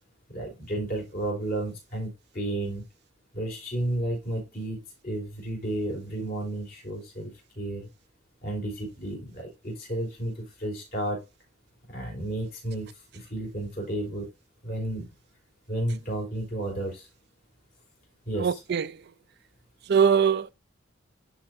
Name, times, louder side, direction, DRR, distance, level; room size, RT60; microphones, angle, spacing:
voice 1, 0.3-2.8 3.3-7.9 8.4-11.2 11.9-14.3 14.6-15.1 15.7-17.1 18.3-18.6, right 1 dB, 45° left, 4.0 m, -32 dB
voice 2, 18.4-18.9 19.9-20.5, right 7 dB, 55° right, 0.4 m, -21 dB
11.5 x 4.5 x 2.6 m
head